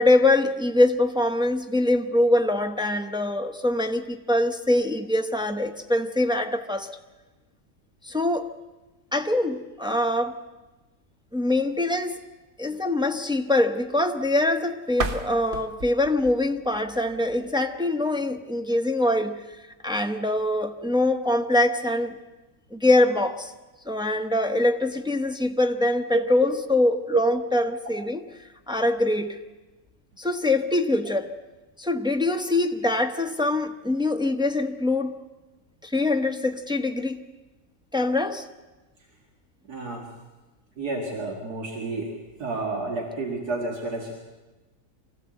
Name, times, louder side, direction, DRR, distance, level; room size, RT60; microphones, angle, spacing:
voice 1, 0.0-6.9 8.0-8.5 9.1-10.4 11.3-12.2 12.6-19.4 19.8-22.2 22.7-23.5 23.9-28.2 28.7-29.4 30.2-31.3 31.8-35.2 35.8-37.2 37.9-38.5, left 1 dB, 5° right, 5 dB, 0.5 m, -23 dB
sound 1, 14.9-17.8, right 3 dB, 40° right, 1.0 m, -35 dB
voice 2, 39.7-40.1 40.8-42.1 42.4-44.1, right 3 dB, 70° right, 0 dB, 2.5 m, -29 dB
24.0 x 16.0 x 7.7 m, 1.2 s
omnidirectional pair, 1.7 m